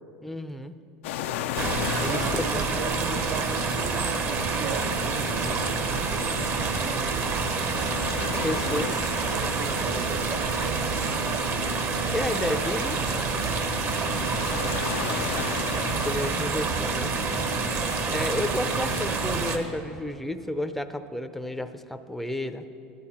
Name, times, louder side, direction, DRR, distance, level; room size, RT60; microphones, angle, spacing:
voice 1, 0.2-0.7 2.0-2.9 8.4-8.9 12.1-13.0 15.9-17.2 17.6-22.7, left 1 dB, ahead, 9 dB, 0.6 m, -31 dB
mar llafranc close perspective, 1.0-19.1, left 11 dB, 85° left, 0.5 m, -38 dB
sound 1, 1.5-19.6, right 4 dB, 40° right, 1.1 m, -27 dB
voice 2, 2.0-7.4 8.3-12.3 13.9-15.2, right 3 dB, 80° right, 2 dB, 1.6 m, -38 dB
16.5 x 11.0 x 4.3 m, 2.9 s
supercardioid pair, 105°, 6 cm